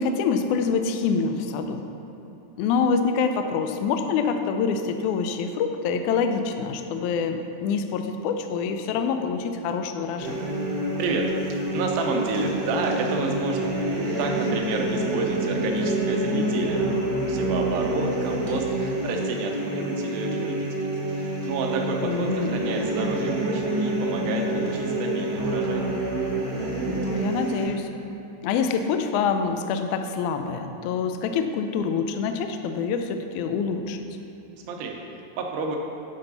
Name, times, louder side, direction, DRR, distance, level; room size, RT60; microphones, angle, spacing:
voice 1, 0.0-1.9 2.6-10.4 22.0-22.6 26.8-27.9 28.4-34.0, left 5 dB, 85° left, 7 dB, 1.7 m, -26 dB
sound 1, 10.2-27.6, right 1 dB, 55° right, 1.0 m, -27 dB
voice 2, 11.0-13.8 14.2-16.9 17.3-25.9 34.7-35.8, right 3 dB, 90° right, 2 dB, 2.6 m, -30 dB
10.5 x 5.4 x 4.0 m, 2.8 s
omnidirectional pair, 4.0 m